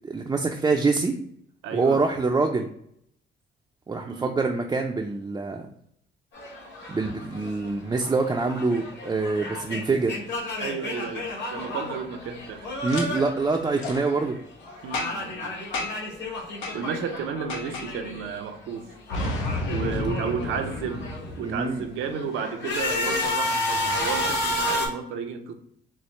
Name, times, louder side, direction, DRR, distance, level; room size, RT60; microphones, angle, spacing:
voice 1, 0.0-1.1 1.7-2.7 3.9-5.7 6.9-10.1 12.8-14.4 21.4-21.8, right 3 dB, 20° right, 1 dB, 0.4 m, -25 dB
voice 2, 1.6-2.0 4.0-4.3 10.6-12.7 14.8-15.7 16.7-18.9 19.7-21.1 21.4-25.5, right 6 dB, 80° right, 6 dB, 0.6 m, -32 dB
sound 1, 6.3-14.4 14.6-18.4 18.7-21.3 21.8-24.9, left 1 dB, 60° left, 1.3 m, -32 dB
Boom, 12.9-13.0 13.8-14.0 14.9-15.3 15.7-16.1 16.6-16.8 17.5-17.9 19.1-21.8, left 2 dB, 90° left, 0.7 m, -31 dB
4.3 x 2.0 x 3.1 m, 0.70 s
cardioid pair, 90°, 20 cm